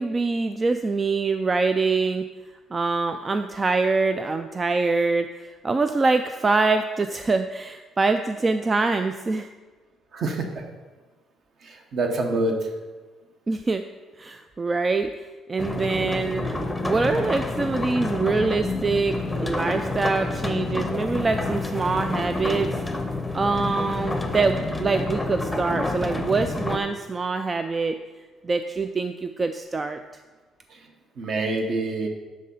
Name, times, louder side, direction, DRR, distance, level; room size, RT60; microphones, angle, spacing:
voice 1, 0.0-2.2 2.7-9.5 13.5-13.8 14.2-15.1 15.5-16.5 16.8-22.7 23.3-28.0 28.4-30.0, right 3 dB, 25° right, 8 dB, 0.3 m, -24 dB
voice 2, 10.1-10.6 11.6-12.7 31.2-32.1, right 2 dB, 50° right, 3 dB, 1.3 m, -26 dB
sound 1, 15.6-26.8, left 2 dB, 10° left, 0.7 m, -28 dB
10.5 x 3.7 x 5.6 m, 1.3 s
cardioid pair, 125°, 0 cm